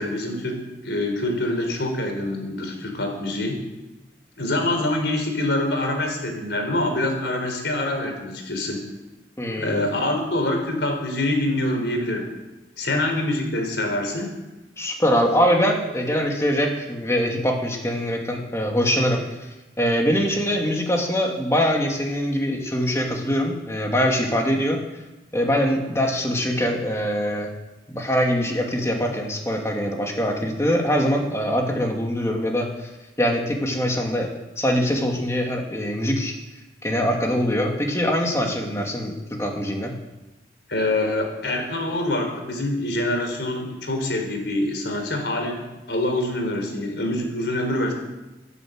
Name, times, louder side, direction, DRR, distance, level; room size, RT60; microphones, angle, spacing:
voice 1, 0.0-3.6 4.4-8.8 9.6-12.3 12.8-14.3 40.7-47.9, left 1 dB, 80° left, 3 dB, 4.1 m, -25 dB
voice 2, 9.4-9.8 14.8-19.2 19.8-24.8 25.3-27.5 27.9-32.9 33.2-34.3 34.6-36.3 36.8-39.9, equal, 15° left, 1 dB, 2.5 m, -23 dB
18.5 x 9.9 x 8.0 m, 1.1 s
head